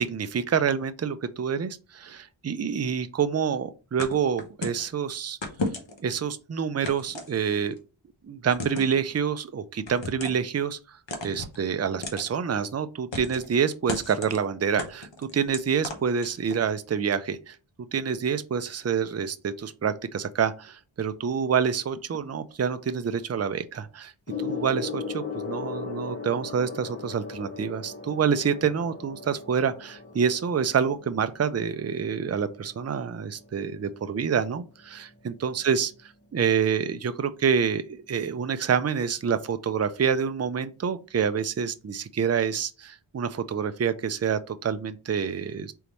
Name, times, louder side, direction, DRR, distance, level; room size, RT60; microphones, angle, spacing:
voice 1, 0.0-5.4 6.0-7.8 8.2-10.8 11.2-17.6 17.9-24.1 24.4-35.9 36.3-45.7, right 7 dB, 35° right, 0.4 m, -27 dB
sound 1, 4.0-4.9 5.4-6.1 6.8-7.8 8.5-9.0 9.9-10.5 11.1-11.6 12.0-12.3 13.1-13.5 13.9-14.4 14.8-16.7, left 2 dB, 60° left, 1.0 m, -34 dB
Gong, 24.3-34.0 35.0-35.2, left 5 dB, 30° left, 1.2 m, -38 dB
3.9 x 3.5 x 3.0 m
wide cardioid pair, 50°, 50 cm